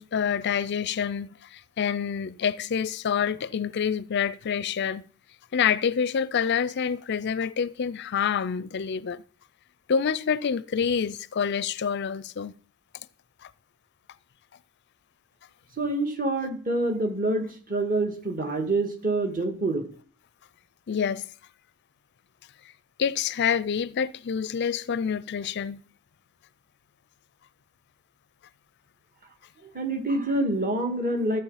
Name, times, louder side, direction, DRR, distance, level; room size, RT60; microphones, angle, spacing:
voice 1, 0.0-5.0 5.5-9.2 9.9-12.5 13.4-13.5 20.9-21.2 23.0-25.8, left 7 dB, 50° left, 0.4 m, -27 dB
voice 2, 15.8-19.9 29.7-31.4, right 2 dB, 40° right, 2.2 m, -26 dB
14.5 x 7.4 x 5.7 m
head